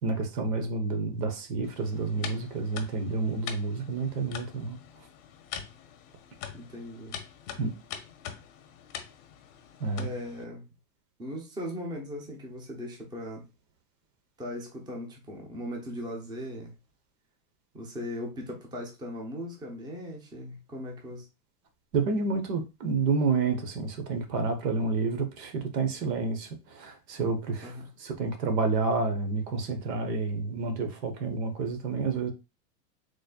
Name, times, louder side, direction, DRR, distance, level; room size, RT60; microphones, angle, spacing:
voice 1, 0.0-4.8 7.6-7.7 9.8-10.1 21.9-27.7 28.0-32.3, right 4 dB, 85° right, 1.2 m, -29 dB
sound 1, 1.6-10.4, left 8 dB, 40° left, 0.6 m, -44 dB
voice 2, 6.5-7.2 10.0-10.7 11.2-13.5 14.4-16.7 17.7-21.3 27.6-27.9, left 1 dB, 10° right, 0.6 m, -38 dB
4.1 x 3.2 x 2.3 m
supercardioid pair, 145°, 47 cm